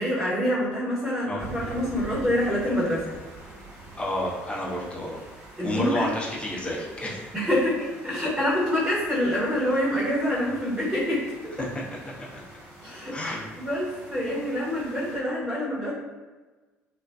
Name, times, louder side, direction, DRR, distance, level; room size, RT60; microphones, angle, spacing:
voice 1, 0.0-3.1 5.6-6.1 7.3-11.5 12.8-15.9, equal, 15° right, -10 dB, 1.1 m, -26 dB
sound 1, 1.4-15.2, right 2 dB, 45° right, 1.1 m, -45 dB
voice 2, 4.0-5.2 5.6-7.3 11.6-11.7 12.3-12.4 13.1-13.4, left 1 dB, 15° left, -4 dB, 0.7 m, -30 dB
2.4 x 2.3 x 2.3 m, 1.3 s
figure-of-eight pair, 55°, 7 cm